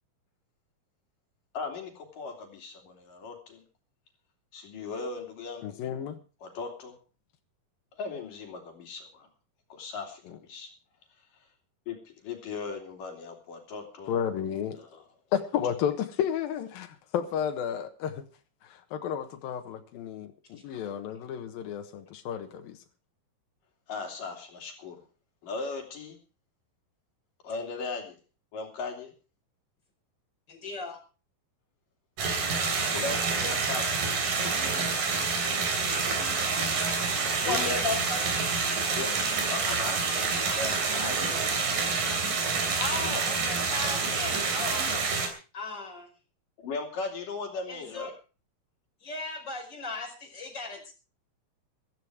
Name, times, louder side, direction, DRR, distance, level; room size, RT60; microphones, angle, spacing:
voice 1, 1.5-3.6 4.5-5.8 6.4-7.0 7.9-9.3 9.7-10.2 10.5-10.7 11.3-11.5 11.9-14.2 14.8-15.0 23.9-25.0 25.4-26.2 27.4-28.2 28.5-29.1 32.9-34.0 37.4-37.8 39.0-39.1 39.4-41.5 43.0-43.2 46.6-48.1, left 4 dB, 65° left, 3 dB, 4.4 m, -38 dB
voice 2, 5.6-6.2 14.1-14.8 15.3-18.2 18.6-22.8, left 9 dB, 80° left, 5 dB, 3.1 m, -32 dB
voice 3, 30.5-31.0 37.4-38.2 42.8-46.1 47.7-48.1 49.0-50.9, left 3 dB, 30° left, 1 dB, 5.7 m, -36 dB
sound 1, 32.2-45.3, right 4 dB, 65° right, 4.6 m, -28 dB
15.5 x 14.0 x 4.8 m, 0.35 s
omnidirectional pair, 4.1 m